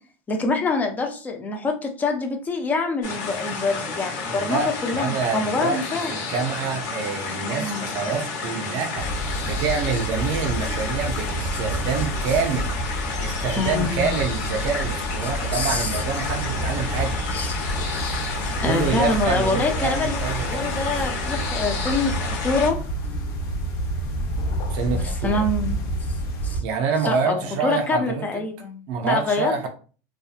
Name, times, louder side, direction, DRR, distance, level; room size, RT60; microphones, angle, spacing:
voice 1, 0.3-6.2 7.4-7.9 11.5-11.6 13.6-14.1 15.5-16.0 17.3-17.7 18.1-18.3 18.6-20.2 20.5-22.8 24.9-25.9 26.4-26.6 27.0-29.7, left 3 dB, 20° left, 3 dB, 0.5 m, -26 dB
sound 1, 3.0-22.7, left 4 dB, 65° left, 1.1 m, -31 dB
voice 2, 4.3-5.8 6.1-9.1 9.4-12.7 13.2-17.2 18.6-20.7 24.7-25.5 26.6-28.4 28.9-29.7, right 5 dB, 55° right, 4 dB, 0.5 m, -27 dB
sound 2, 9.0-26.6, right 1 dB, 50° left, 0.8 m, -29 dB
2.6 x 2.3 x 2.4 m, 0.38 s
supercardioid pair, 145°, 9 cm